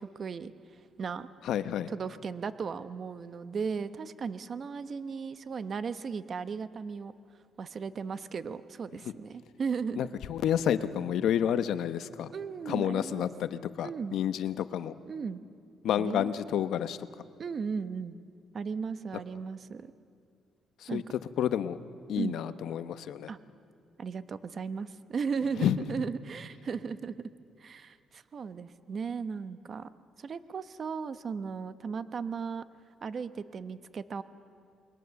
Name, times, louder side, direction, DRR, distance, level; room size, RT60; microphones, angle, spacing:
voice 1, 0.0-1.3 1.9-7.1 7.6-10.0 12.3-13.2 13.8-14.2 15.1-15.4 16.0-16.3 17.4-18.2 18.5-19.9 20.9-21.0 22.2-22.4 23.3-23.4 24.0-27.2 27.6-29.9 30.2-32.6 33.0-34.2, right 5 dB, 50° right, 13 dB, 0.9 m, -36 dB
voice 2, 1.5-1.9 10.0-12.3 12.7-14.9 15.8-17.0 20.8-21.0 21.4-21.8 22.1-23.3 25.6-25.8, left 10 dB, 75° left, 12 dB, 0.9 m, -29 dB
28.5 x 21.5 x 7.0 m, 2.4 s
cardioid pair, 90°, 0 cm